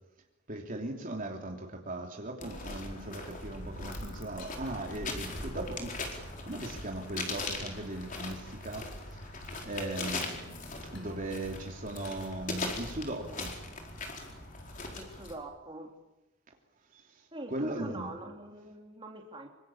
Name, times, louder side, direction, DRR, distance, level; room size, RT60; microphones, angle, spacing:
voice 1, 0.5-9.4 9.6-10.4 10.9-13.5 16.9-18.1, right 1 dB, 40° right, 1 dB, 3.1 m, -38 dB
sound 1, 2.4-15.3, left 2 dB, 40° left, 4.6 m, -40 dB
sound 2, 5.9-12.2, left 1 dB, 60° left, 6.2 m, -54 dB
voice 2, 14.9-15.9 17.3-19.5, right 2 dB, 25° right, 2 dB, 3.4 m, -43 dB
26.0 x 25.0 x 7.2 m, 0.97 s
head